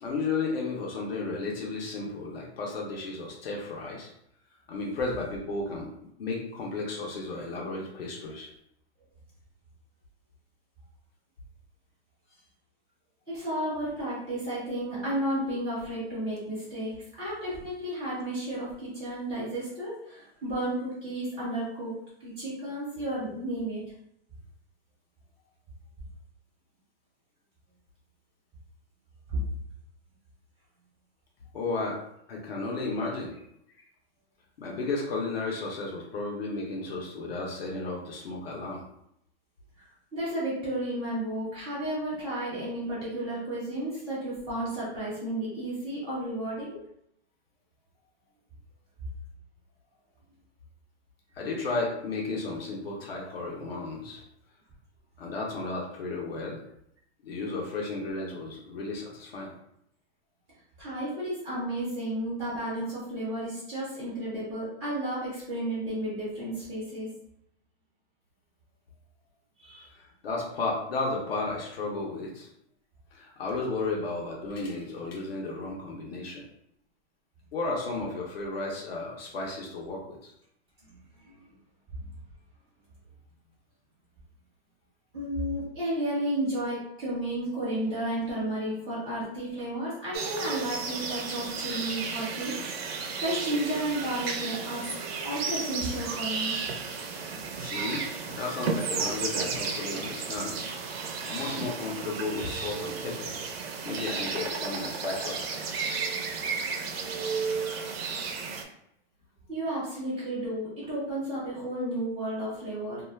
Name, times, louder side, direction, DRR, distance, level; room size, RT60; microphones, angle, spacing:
voice 1, 0.0-4.1 4.7-5.9 6.2-8.5 31.5-32.0 32.3-33.4 34.6-38.8 51.3-54.2 55.2-56.6 57.2-59.5 69.7-72.5 73.1-76.5 77.5-80.3 97.6-100.6 101.3-103.4 103.8-105.4, left 3 dB, 60° left, -2 dB, 0.8 m, -33 dB
voice 2, 13.3-23.8 29.3-29.4 40.1-46.8 60.8-67.1 69.6-69.9 81.2-81.4 85.1-92.5 93.2-94.9 95.2-96.6 109.5-113.1, right 1 dB, 5° left, -20 dB, 0.4 m, -32 dB
sound 1, 90.1-108.6, right 5 dB, 60° right, 0.5 m, -33 dB
2.4 x 2.3 x 3.2 m, 0.75 s
hypercardioid pair, 175°, 34 cm